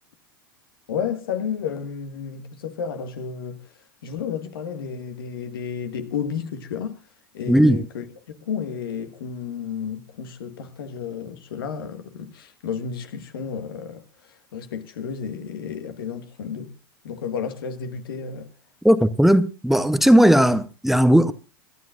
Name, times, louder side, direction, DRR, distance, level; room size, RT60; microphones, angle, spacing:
voice 1, 0.9-7.1 7.3-8.0 8.4-16.7 17.0-18.5, left 7 dB, 80° left, 1.7 m, -32 dB
voice 2, 7.5-7.9 18.8-21.3, equal, ahead, 0.8 m, -16 dB
27.5 x 12.5 x 2.5 m
hypercardioid pair, 105°, 12 cm